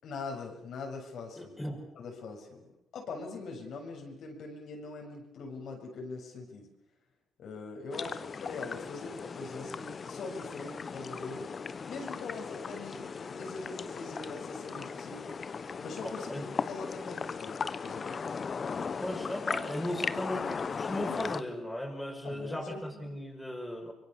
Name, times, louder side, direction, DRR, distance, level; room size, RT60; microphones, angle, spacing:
voice 1, 0.0-1.6 2.0-6.7 7.4-11.5 11.8-15.3 15.8-18.2 22.2-23.1, left 3 dB, 70° left, 0 dB, 6.9 m, -42 dB
voice 2, 1.4-1.8 16.0-16.5 19.0-23.9, left 1 dB, 5° left, 1 dB, 5.9 m, -37 dB
sound 1, 7.9-21.4, left 5 dB, 40° left, 1.2 m, -37 dB
25.0 x 23.0 x 7.0 m, 0.79 s
cardioid pair, 90°, 0 cm